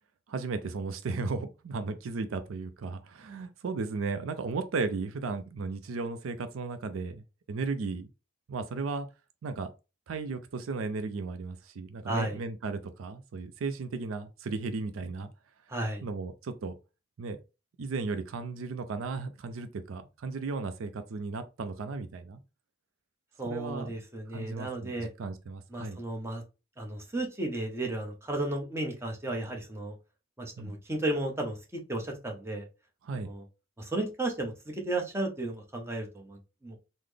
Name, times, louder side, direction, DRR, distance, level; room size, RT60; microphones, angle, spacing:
voice 1, 0.3-8.1 8.5-9.1 9.4-9.7 10.1-15.3 16.0-16.7 17.2-17.4 17.8-22.4 23.5-23.9 24.3-26.0 30.6-30.8 33.0-33.3, right 4 dB, 80° right, 0.4 m, -35 dB
voice 2, 12.1-12.4 15.7-16.0 23.4-25.1 25.7-26.4 26.8-29.9 30.4-32.7 33.2-33.4 33.8-36.8, right 2 dB, 15° right, 0.8 m, -34 dB
3.8 x 2.0 x 3.2 m
head